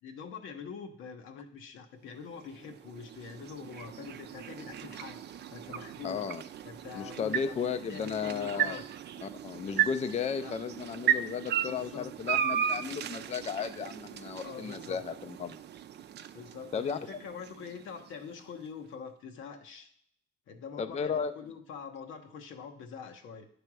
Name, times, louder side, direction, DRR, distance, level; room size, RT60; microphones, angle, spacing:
voice 1, 0.0-6.3 6.6-8.8 10.4-10.5 11.7-12.1 14.4-15.0 16.3-19.9 20.5-23.5, left 6 dB, 80° left, 5 dB, 1.0 m, -44 dB
sound 1, 2.2-18.4, right 10 dB, 60° right, 0.5 m, -36 dB
voice 2, 6.0-6.4 7.0-8.8 9.2-15.6 16.7-17.0 20.8-21.3, left 6 dB, 35° left, 10 dB, 0.4 m, -34 dB
9.7 x 3.4 x 6.1 m, 0.66 s
cardioid pair, 90°, 20 cm